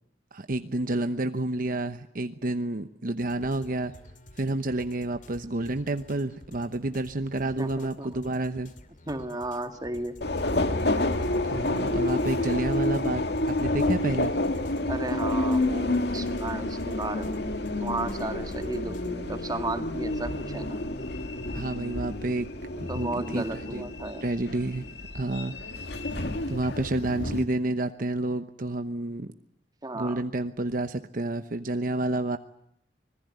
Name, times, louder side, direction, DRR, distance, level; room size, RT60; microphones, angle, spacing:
voice 1, 0.3-3.9 4.4-8.7 11.5-14.4 21.5-22.5 22.8-23.8 24.2-24.8 25.1-25.5 26.5-29.3 29.9-32.4, right 2 dB, 50° right, 9 dB, 0.9 m, -29 dB
sound 1, 3.2-19.3, left 1 dB, 50° left, 2.7 m, -51 dB
voice 2, 7.6-8.1 9.1-10.2 14.9-17.4 17.8-20.8 22.7-24.3 29.8-30.2, right 2 dB, 25° right, 7 dB, 2.1 m, -34 dB
Subway metro underground, 10.2-27.4, left 2 dB, 65° left, 2.0 m, -29 dB
25.5 x 20.5 x 9.4 m, 0.73 s
head